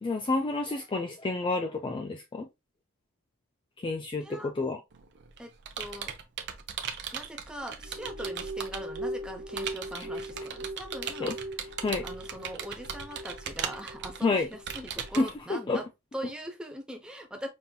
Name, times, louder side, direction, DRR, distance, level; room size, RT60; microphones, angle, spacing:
voice 1, 0.0-2.5 3.8-4.8 11.2-11.4 11.8-12.0 14.2-14.5 15.2-15.8, left 3 dB, 20° left, 0.3 m, -29 dB
voice 2, 4.2-4.5 5.4-5.5 5.8-6.1 7.1-11.3 12.0-15.8 16.1-17.5, equal, 5° right, 0.8 m, -41 dB
Computer keyboard, 4.9-9.0 9.6-15.3, right 7 dB, 50° right, 0.6 m, -38 dB
sound 1, 7.6-15.2, right 1 dB, 75° right, 1.2 m, -40 dB
5.2 x 2.8 x 2.3 m
head